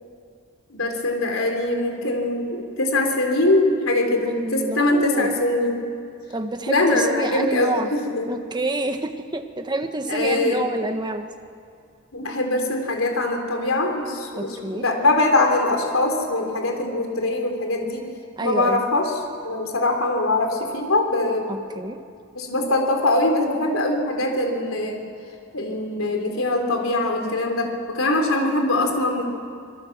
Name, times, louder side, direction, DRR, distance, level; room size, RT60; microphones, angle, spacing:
voice 1, 0.7-5.8 6.7-8.3 10.1-10.6 12.1-18.1 18.4-21.5 22.3-25.0 25.5-29.2, left 2 dB, 75° left, 3 dB, 3.7 m, -22 dB
voice 2, 4.3-5.4 6.3-7.9 8.3-11.3 14.4-14.8 18.4-18.8 21.5-22.0, right 2 dB, 20° right, 6 dB, 1.4 m, -28 dB
26.5 x 22.0 x 7.4 m, 2.3 s
head